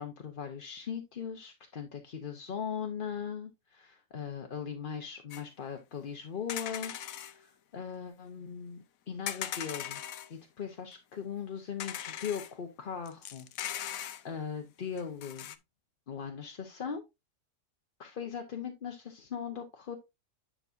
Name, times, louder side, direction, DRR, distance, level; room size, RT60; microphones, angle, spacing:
voice 1, 0.0-6.9 7.2-10.0 10.3-15.5 16.1-17.0 18.0-20.0, left 7 dB, 45° left, 4 dB, 0.9 m, -39 dB
sound 1, 5.3-5.4 6.5-7.3 9.3-10.3 10.9-11.0 11.8-12.5 13.1-14.2 15.0-15.6, left 10 dB, 70° left, 1.1 m, -39 dB
9.6 x 5.6 x 2.5 m, 0.22 s
omnidirectional pair, 1.6 m